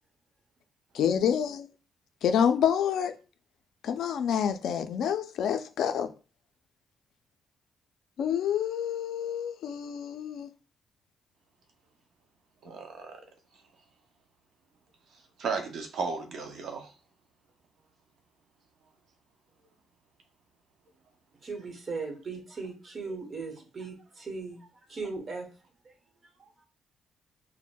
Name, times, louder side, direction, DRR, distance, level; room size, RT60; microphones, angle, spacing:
voice 1, 0.9-1.7 2.2-3.1 3.8-6.1 8.2-10.5, left 8 dB, 75° left, 0.4 m, -27 dB
voice 2, 12.6-13.2 15.4-16.9, right 5 dB, 65° right, 0.7 m, -34 dB
voice 3, 21.4-25.5 25.8-25.9, right 4 dB, 45° right, 1.0 m, -38 dB
4.1 x 2.0 x 2.2 m
cardioid pair, 90°, 0 cm